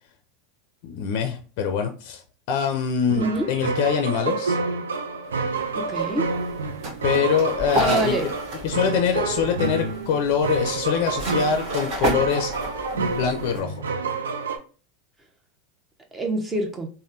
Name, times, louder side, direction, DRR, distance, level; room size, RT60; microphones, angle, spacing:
voice 1, 0.8-2.2 2.5-4.6 7.0-8.3 8.6-12.5 12.9-13.8, left 7 dB, 60° left, 6 dB, 0.5 m, -24 dB
voice 2, 3.1-3.5 5.7-6.3 7.8-8.3 16.1-16.9, right 2 dB, 15° right, 3 dB, 0.9 m, -26 dB
sound 1, 3.1-14.6, right 4 dB, 85° right, 0.4 m, -28 dB
sound 2, 5.3-13.6, right 1 dB, 50° right, 1.1 m, -32 dB
3.4 x 2.2 x 2.6 m, 0.37 s
hypercardioid pair, 95°, 0 cm